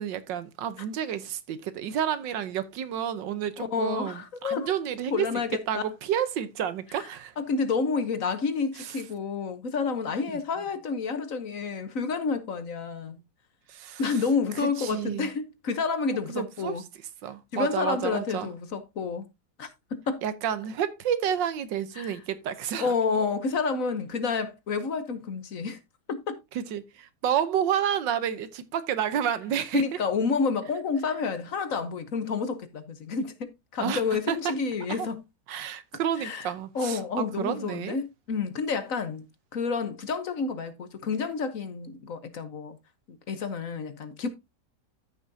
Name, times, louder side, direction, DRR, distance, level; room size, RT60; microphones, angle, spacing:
voice 1, 0.0-5.2 5.7-7.3 8.8-8.9 13.7-14.2 14.6-15.3 16.3-16.8 17.2-18.5 20.2-22.9 26.5-29.8 33.8-34.5 34.9-35.1 35.5-38.0, right 9 dB, 90° right, 1.6 m, -30 dB
voice 2, 3.6-4.7 5.1-5.8 6.9-7.0 7.4-13.2 14.0-16.8 17.5-19.3 19.6-20.2 22.0-22.2 22.8-25.8 26.1-26.4 29.7-35.2 36.2-36.5 36.7-39.2 39.5-42.8 43.1-44.3, left 5 dB, 55° left, 1.3 m, -29 dB
14.0 x 6.1 x 2.7 m
omnidirectional pair, 1.9 m